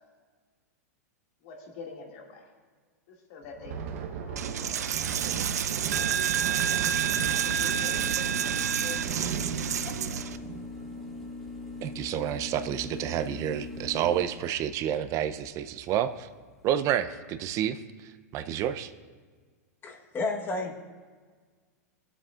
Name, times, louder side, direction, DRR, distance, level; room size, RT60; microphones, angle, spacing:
voice 1, 1.4-2.4 3.1-4.8 5.7-6.0 6.4-6.5 7.3-8.5 8.8-9.5 9.8-10.2, left 4 dB, 55° left, 0 dB, 2.2 m, -45 dB
Thunder, 3.4-12.5 12.8-13.1 13.4-13.7 14.3-14.8, right 8 dB, 60° right, 1.0 m, -38 dB
Coin (dropping), 4.4-10.4, right 9 dB, 85° right, 0.5 m, -29 dB
sound 1, 6.9-16.7, left 3 dB, 5° left, 2.2 m, -42 dB
voice 2, 11.8-16.3 16.6-17.8 18.3-18.9, right 10 dB, 40° right, 12 dB, 0.6 m, -29 dB
voice 3, 19.8-20.7, left 2 dB, 25° left, 3 dB, 1.2 m, -31 dB
18.5 x 7.8 x 2.4 m, 1.5 s
hypercardioid pair, 115°, 9 cm